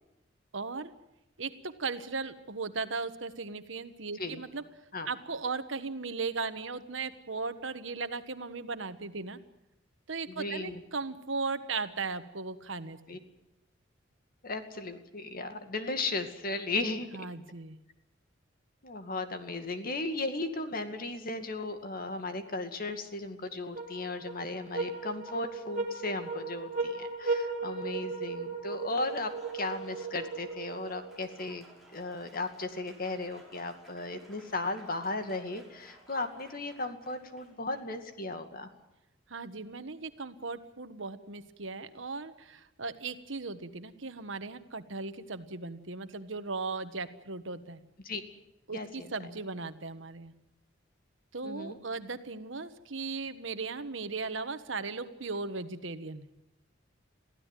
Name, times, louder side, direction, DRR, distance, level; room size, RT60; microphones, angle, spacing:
voice 1, 0.5-0.9 1.4-4.6 5.1-9.4 10.1-13.2 17.1-17.8 39.3-47.8 48.7-50.3 51.3-56.3, right 4 dB, 75° right, 11 dB, 1.4 m, -37 dB
voice 2, 10.3-10.8 13.1-13.2 14.4-17.1 18.8-31.6 31.9-38.7 48.0-48.2 48.7-49.1 51.4-51.8, left 2 dB, 50° left, 7 dB, 2.3 m, -36 dB
sound 1, 23.8-31.3, right 4 dB, 40° right, 3.8 m, -36 dB
Applause, 28.7-38.0, right 1 dB, ahead, 6.2 m, -57 dB
23.0 x 15.5 x 9.2 m, 0.92 s
head